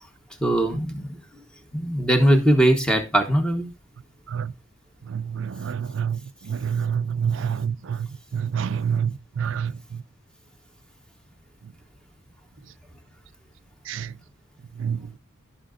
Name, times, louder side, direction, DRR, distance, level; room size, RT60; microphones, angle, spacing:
voice 1, 0.4-1.2 1.7-3.7, right 1 dB, 5° left, 1.1 m, -20 dB
voice 2, 5.1-6.2 6.5-8.1 8.3-9.7 13.9-14.1 14.8-15.0, right 7 dB, 65° right, 0.4 m, -27 dB
16.0 x 5.8 x 2.5 m
head